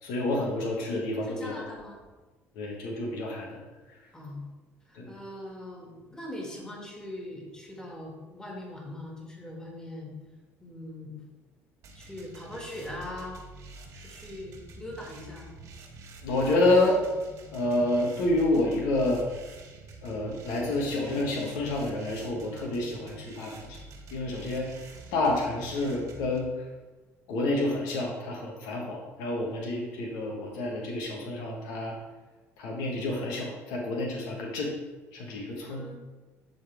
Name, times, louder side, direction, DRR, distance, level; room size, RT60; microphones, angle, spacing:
voice 1, 0.0-1.6 2.5-3.6 3.9-4.0 4.9-5.1 16.2-17.0 17.5-19.2 20.0-23.8 24.1-26.7 27.3-32.0 32.6-34.7 35.1-35.9, left 2 dB, 85° left, -1 dB, 1.4 m, -29 dB
voice 2, 1.4-2.0 4.1-4.5 4.8-10.2 10.6-11.2 11.9-13.4 13.9-15.5 35.6-35.9, left 1 dB, 15° left, -2 dB, 2.1 m, -41 dB
sound 1, 11.8-26.4, right 2 dB, 60° right, 1.2 m, -47 dB
10.5 x 4.0 x 3.5 m, 1.2 s
supercardioid pair, 95°, 6 cm